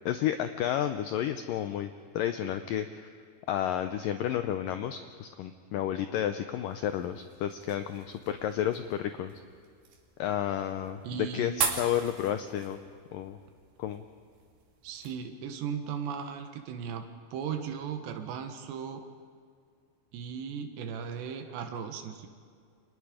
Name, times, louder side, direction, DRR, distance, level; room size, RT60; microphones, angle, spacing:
voice 1, 0.1-2.9 3.5-9.3 10.2-11.0 11.3-11.5 11.8-12.8 13.1-13.4 13.8-14.0, left 10 dB, 80° left, 9 dB, 2.0 m, -31 dB
sound 1, 6.7-15.1, right 6 dB, 70° right, 4.3 m, -40 dB
voice 2, 11.0-11.5 14.8-17.0 17.3-19.1 20.1-22.3, right 7 dB, 85° right, 6 dB, 3.5 m, -37 dB
29.5 x 25.5 x 5.0 m, 2.2 s
omnidirectional pair, 4.8 m